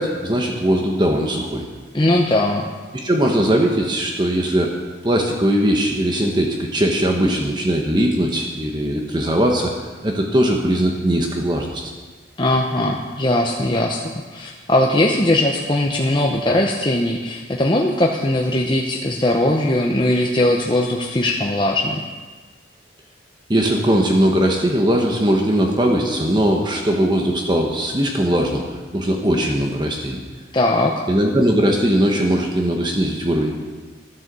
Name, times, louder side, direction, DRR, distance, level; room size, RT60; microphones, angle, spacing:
voice 1, 0.0-1.7 3.0-4.7 5.0-9.7 10.0-11.9 23.5-28.6 28.9-30.2 31.1-33.5, right 1 dB, 25° right, 1 dB, 1.2 m, -19 dB
voice 2, 1.9-2.7 12.4-14.0 14.3-22.0 30.5-30.9, left 1 dB, 25° left, 0 dB, 0.8 m, -19 dB
12.5 x 10.0 x 6.8 m, 1.4 s
head